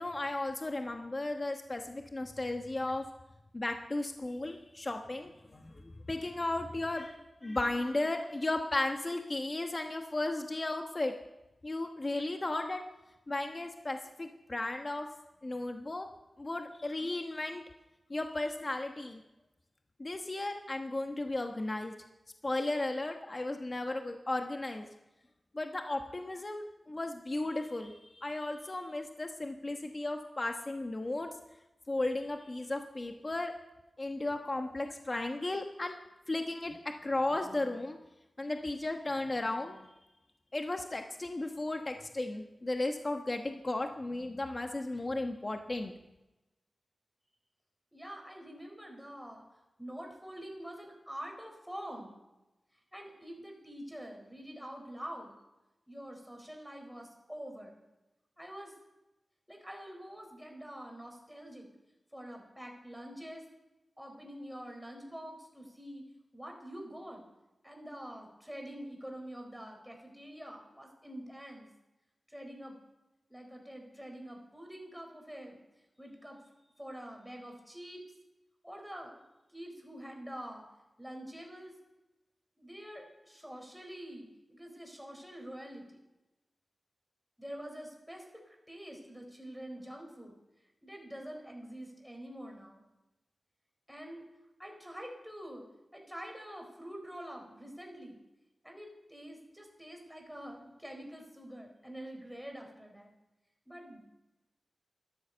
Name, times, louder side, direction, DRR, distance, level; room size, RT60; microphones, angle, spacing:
voice 1, 0.0-3.0 3.5-5.7 6.1-7.2 7.4-11.1 11.6-12.8 13.3-15.1 15.4-16.1 16.4-17.6 18.1-19.2 20.0-21.9 22.4-24.9 25.5-31.3 31.9-33.5 34.0-36.0 36.3-36.8 37.0-38.0 38.4-39.8 40.5-45.9, left 2 dB, 35° left, 4 dB, 1.1 m, -35 dB
voice 2, 47.9-49.4 49.8-52.2 52.9-55.3 55.9-57.8 58.4-58.7 59.5-61.7 62.1-63.5 64.0-66.0 66.3-67.2 67.6-71.7 72.3-72.7 73.3-75.6 76.0-76.4 76.8-78.1 78.6-79.2 79.5-80.6 81.0-81.7 82.6-86.0 87.4-90.3 90.8-92.8 93.9-94.2 94.6-95.6 95.9-98.2 98.6-103.1 103.7-104.0, equal, ahead, 2 dB, 4.3 m, -46 dB
13.0 x 12.5 x 6.8 m, 0.98 s
wide cardioid pair, 90°, 0 cm